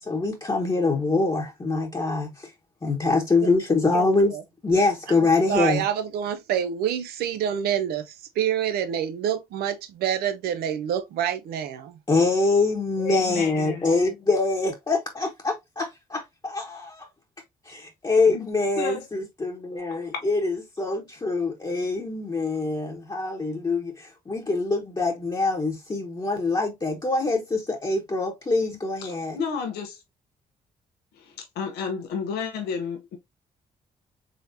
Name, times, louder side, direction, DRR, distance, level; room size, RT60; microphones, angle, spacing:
voice 1, 0.1-2.5 2.8-4.3 4.6-5.8 12.1-17.1 17.7-29.4, left 3 dB, 25° left, 1.1 m, -24 dB
voice 2, 5.5-12.0, right 9 dB, 80° right, 0.7 m, -27 dB
voice 3, 13.0-13.9 18.3-18.5 18.8-19.1 19.9-20.2 29.0-30.0 31.1-33.2, left 6 dB, 85° left, 0.9 m, -32 dB
3.9 x 3.4 x 2.6 m
supercardioid pair, 55°, 16 cm